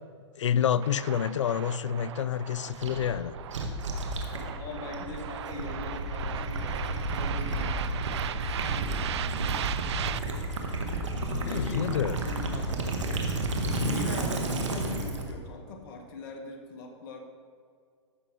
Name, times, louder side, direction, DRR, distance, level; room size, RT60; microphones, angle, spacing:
voice 1, 0.4-3.3 11.3-12.2 13.7-14.0, left 9 dB, 85° left, 17 dB, 0.4 m, -28 dB
sound 1, 0.8-10.2, right 11 dB, 70° right, 0.4 m, -38 dB
Gurgling / Liquid, 2.7-15.3, right 2 dB, 85° right, 1.5 m, -32 dB
voice 2, 4.3-10.8 11.4-13.2 13.7-17.2, left 3 dB, 50° left, 2 dB, 1.5 m, -42 dB
sound 2, 11.2-11.8 13.9-14.5, left 1 dB, 30° right, 1.2 m, -45 dB
13.5 x 6.0 x 3.7 m, 2.2 s
hypercardioid pair, 130°, 15 cm